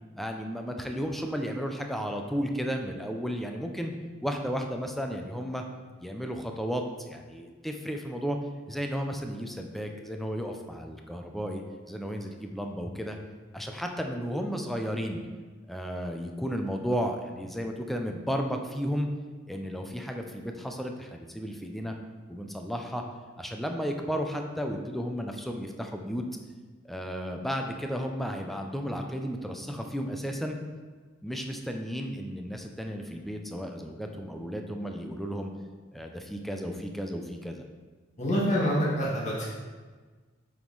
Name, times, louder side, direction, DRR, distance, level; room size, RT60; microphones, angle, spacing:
voice 1, 0.1-3.9 4.2-5.6 6.0-8.4 8.7-11.6 11.9-13.2 13.5-15.2 15.7-19.1 19.5-21.9 22.3-23.0 23.4-26.2 26.8-30.6 31.2-35.5 35.9-37.6, equal, ahead, 3 dB, 0.5 m, -33 dB
voice 2, 38.2-39.4, equal, 40° left, -6 dB, 1.5 m, -26 dB
7.4 x 3.7 x 3.9 m, 1.4 s
head